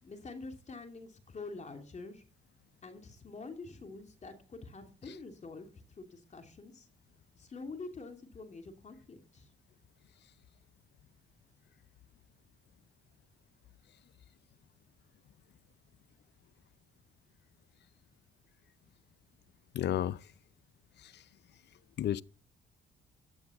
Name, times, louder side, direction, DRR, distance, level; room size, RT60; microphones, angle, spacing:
voice 1, 0.0-2.2 2.8-5.7 6.0-6.9 7.4-9.5, left 3 dB, 35° left, 2.9 m, -46 dB
voice 2, 19.7-20.2 22.0-22.2, left 11 dB, 60° left, 0.6 m, -31 dB
12.0 x 8.8 x 7.1 m
cardioid pair, 90°, 20 cm